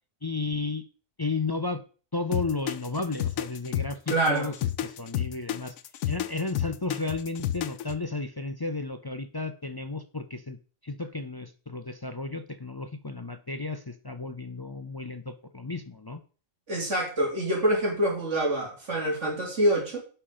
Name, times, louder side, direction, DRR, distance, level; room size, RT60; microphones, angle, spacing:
voice 1, 0.2-0.8 1.2-1.8 2.1-4.5 4.8-5.7 6.1-10.6 10.8-16.2, left 3 dB, 30° left, 8 dB, 0.4 m, -33 dB
sound 1, 2.3-8.0, left 12 dB, 90° left, 1.1 m, -30 dB
voice 2, 4.1-4.5 16.7-20.0, right 1 dB, 65° right, -1 dB, 3.5 m, -26 dB
10.0 x 5.8 x 5.0 m, 0.38 s
omnidirectional pair, 1.4 m